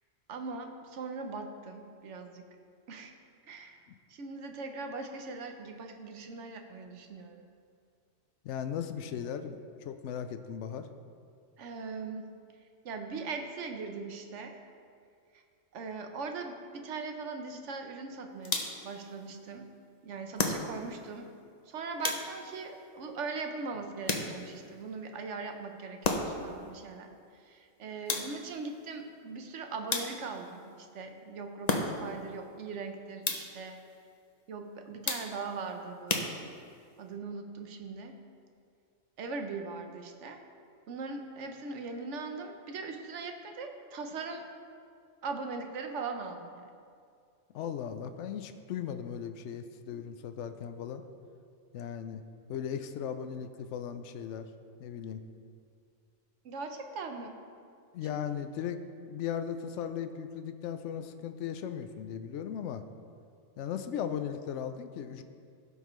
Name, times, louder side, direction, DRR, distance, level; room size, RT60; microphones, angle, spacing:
voice 1, 0.3-2.5 2.9-3.2 3.5-3.8 4.1-7.4 11.6-12.3 12.8-14.6 15.3-15.4 15.7-19.7 20.0-21.3 21.7-33.8 34.5-36.4 37.0-38.2 39.2-40.4 40.9-44.5 45.2-46.7 56.4-57.4 58.1-58.2, right 4 dB, 80° right, 5 dB, 1.1 m, -40 dB
voice 2, 8.4-10.9 47.5-51.0 51.7-52.2 52.5-54.5 54.8-55.3 57.9-62.9 63.6-65.2, left 8 dB, 80° left, 9 dB, 0.9 m, -37 dB
sound 1, 18.4-19.0 20.4-21.0 22.0-22.6 24.1-24.7 26.0-26.5 28.1-28.6 29.9-30.5 31.7-32.2 33.2-33.7 35.1-35.6 36.1-36.8, left 3 dB, 40° left, 0.7 m, -33 dB
16.0 x 5.5 x 3.1 m, 2.3 s
omnidirectional pair, 1.2 m